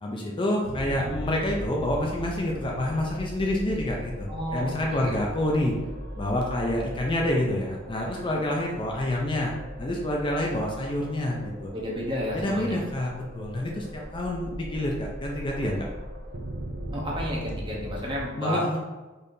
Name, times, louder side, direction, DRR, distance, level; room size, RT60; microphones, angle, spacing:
voice 1, 0.0-5.8 6.2-9.5 9.8-11.7 12.3-15.9 18.4-18.8, left 1 dB, 25° left, -1 dB, 0.4 m, -28 dB
sound 1, 0.6-18.2, equal, 55° right, 0.5 m, -39 dB
voice 2, 4.3-5.2 8.3-8.5 11.7-12.8 16.9-18.6, equal, 25° right, -4 dB, 0.9 m, -32 dB
4.1 x 3.3 x 2.7 m, 1.2 s
head